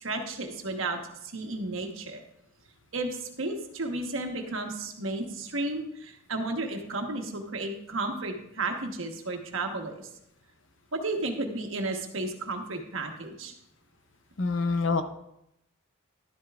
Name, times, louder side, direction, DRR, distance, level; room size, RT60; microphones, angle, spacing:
voice 1, 0.0-2.2 2.9-10.1 10.9-13.5, right 2 dB, 70° right, 4 dB, 1.2 m, -33 dB
voice 2, 14.4-15.0, left 4 dB, 60° left, 9 dB, 0.7 m, -26 dB
11.5 x 11.0 x 2.4 m, 0.81 s
head